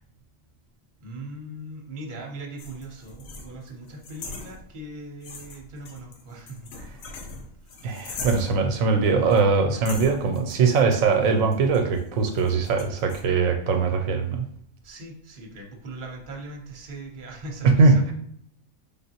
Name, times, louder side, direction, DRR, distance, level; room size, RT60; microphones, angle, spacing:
voice 1, 1.0-6.7 7.6-7.8 14.8-18.1, right 2 dB, 40° right, 0 dB, 0.9 m, -40 dB
sound 1, 2.6-4.9 5.2-8.7 9.3-9.5 9.9-13.2, left 3 dB, 80° left, 1.1 m, -41 dB
voice 2, 7.8-14.4 17.6-18.1, right 4 dB, 85° right, 4 dB, 1.0 m, -21 dB
3.8 x 3.6 x 2.8 m, 0.68 s
omnidirectional pair, 1.4 m